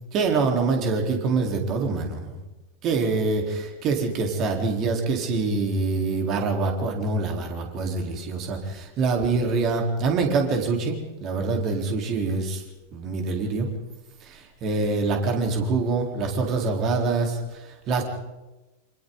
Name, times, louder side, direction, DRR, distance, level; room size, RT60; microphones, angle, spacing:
voice 1, 0.1-2.4 2.8-12.6 12.9-13.7 14.2-17.4 17.9-18.0, right 3 dB, 35° right, 2 dB, 4.1 m, -25 dB
29.0 x 26.5 x 4.1 m, 1.1 s
figure-of-eight pair, 90°, 0 cm